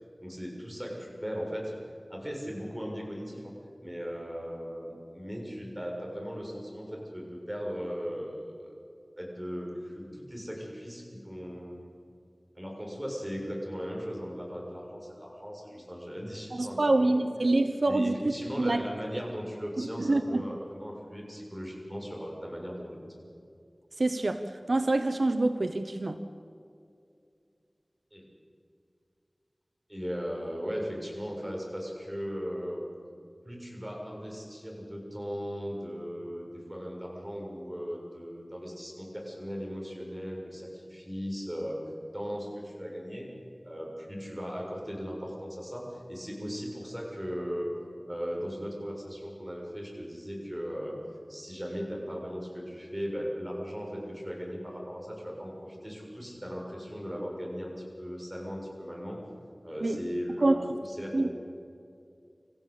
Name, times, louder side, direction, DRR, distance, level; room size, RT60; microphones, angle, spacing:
voice 1, 0.2-1.7 2.1-3.5 3.8-8.4 9.2-11.8 12.6-17.2 17.9-23.1 28.1-28.2 29.9-32.8 33.4-41.8 42.1-43.3 43.6-47.7 48.1-50.9 51.3-57.7 58.0-59.2 59.6-61.3, equal, 10° right, -1 dB, 6.9 m, -37 dB
voice 2, 16.5-18.8 19.8-20.4 24.0-26.2 59.8-60.0 60.4-60.6 61.1-61.3, right 2 dB, 75° right, 8 dB, 1.0 m, -26 dB
26.0 x 15.5 x 8.5 m, 2.4 s
wide cardioid pair, 50°, 0 cm